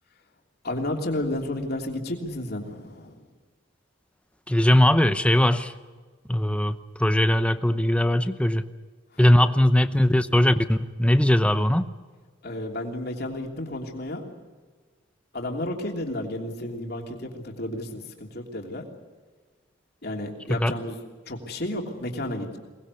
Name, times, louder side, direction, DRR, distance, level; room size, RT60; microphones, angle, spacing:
voice 1, 0.6-3.2 9.1-9.5 12.4-14.3 15.3-18.8 20.0-21.0 21.3-22.6, left 1 dB, 50° left, 2 dB, 3.2 m, -32 dB
voice 2, 4.5-5.7 6.3-8.7 9.2-11.9 20.6-20.7, left 1 dB, 5° left, 11 dB, 0.7 m, -20 dB
23.0 x 19.5 x 8.4 m, 1.4 s
head